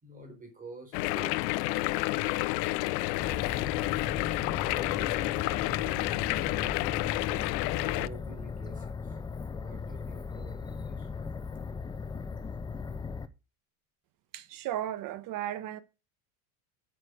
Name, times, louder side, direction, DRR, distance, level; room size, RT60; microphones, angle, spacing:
voice 1, 0.0-3.5 4.6-7.5 7.9-9.2 9.5-11.1, right 3 dB, 15° right, 4.0 m, -50 dB
sound 1, 0.9-8.1, left 20 dB, 75° left, 0.6 m, -30 dB
sound 2, 3.2-13.3, left 5 dB, 10° left, 0.5 m, -38 dB
voice 2, 14.3-15.8, right 12 dB, 40° right, 1.4 m, -35 dB
8.9 x 8.6 x 5.0 m
supercardioid pair, 140°, 49 cm